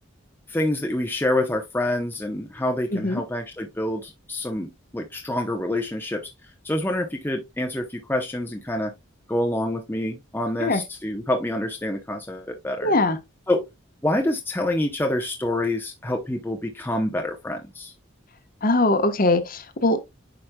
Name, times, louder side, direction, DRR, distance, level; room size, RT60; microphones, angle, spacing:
voice 1, 0.5-6.2 6.6-8.9 9.3-12.9 13.5-13.6 14.0-17.9, left 1 dB, 10° left, 0.7 m, -27 dB
voice 2, 12.8-13.2 18.6-20.0, left 2 dB, 45° left, 1.1 m, -21 dB
9.0 x 5.1 x 2.2 m
head